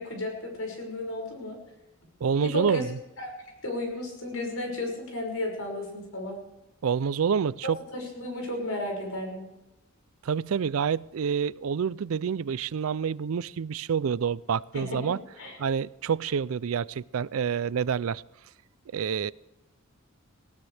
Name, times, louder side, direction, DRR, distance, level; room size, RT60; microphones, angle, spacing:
voice 1, 0.0-1.6 2.4-2.8 3.2-3.3 3.6-6.4 7.9-9.5 14.7-15.6, left 1 dB, 80° left, 2 dB, 5.9 m, -33 dB
voice 2, 2.2-3.0 6.8-7.8 10.2-15.2 15.6-18.2 18.9-19.3, right 7 dB, 75° right, 21 dB, 0.4 m, -27 dB
19.0 x 18.0 x 3.4 m, 1.0 s
head